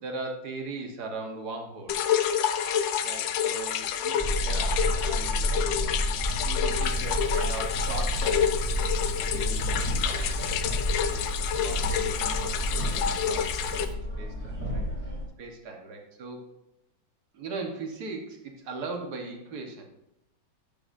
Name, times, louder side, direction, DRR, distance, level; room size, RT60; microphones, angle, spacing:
voice 1, 0.0-2.0 3.0-5.6 6.2-8.6 9.3-10.4 11.1-13.8 14.2-15.1 15.4-16.4 17.3-19.8, right 3 dB, 60° right, 2 dB, 1.7 m, -39 dB
sound 1, 1.9-13.9, left 8 dB, 85° left, 1.4 m, -29 dB
sound 2, 4.2-15.3, equal, 10° right, 3.0 m, -30 dB
sound 3, 6.8-14.0, right 6 dB, 85° right, 1.3 m, -41 dB
12.0 x 6.9 x 2.6 m, 0.89 s
omnidirectional pair, 2.0 m